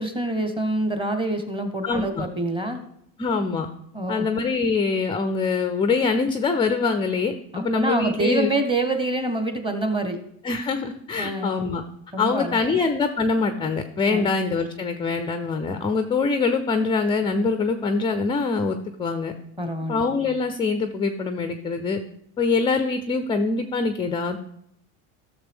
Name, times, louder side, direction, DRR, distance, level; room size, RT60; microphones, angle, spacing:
voice 1, 0.0-2.8 3.9-4.3 7.5-10.2 11.2-11.5 12.1-12.6 14.1-14.3 19.6-20.0, right 2 dB, 10° right, 7 dB, 0.9 m, -26 dB
voice 2, 1.8-2.3 3.2-3.7 4.1-8.5 10.4-11.8 12.2-19.3 19.9-22.0 22.4-24.4, left 4 dB, 15° left, 8 dB, 0.3 m, -24 dB
13.0 x 6.6 x 3.5 m, 0.72 s
cardioid pair, 130°, 42 cm